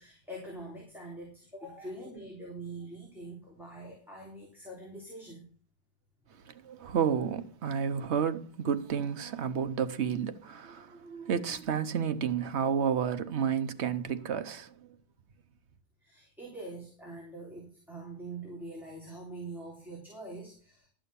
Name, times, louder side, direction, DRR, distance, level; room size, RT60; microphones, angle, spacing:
voice 1, 0.0-5.5 16.0-20.9, right 2 dB, ahead, 3.5 m, -44 dB
voice 2, 6.5-14.7, right 7 dB, 85° right, 1.2 m, -31 dB
12.5 x 6.3 x 6.9 m
omnidirectional pair, 1.1 m